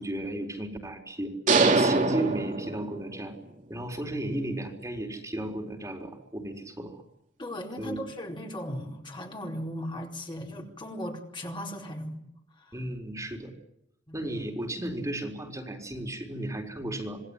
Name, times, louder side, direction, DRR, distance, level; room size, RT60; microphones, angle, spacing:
voice 1, 0.0-1.4 1.6-3.3 3.7-7.0 7.8-8.0 12.7-13.5 14.1-17.2, right 1 dB, 15° right, 3 dB, 4.2 m, -34 dB
sound 1, 1.5-3.3, right 3 dB, 45° right, 3.5 m, -24 dB
voice 2, 7.4-12.3 12.6-12.7 14.1-14.3, equal, 25° left, 1 dB, 4.5 m, -37 dB
27.5 x 20.0 x 9.9 m, 0.81 s
head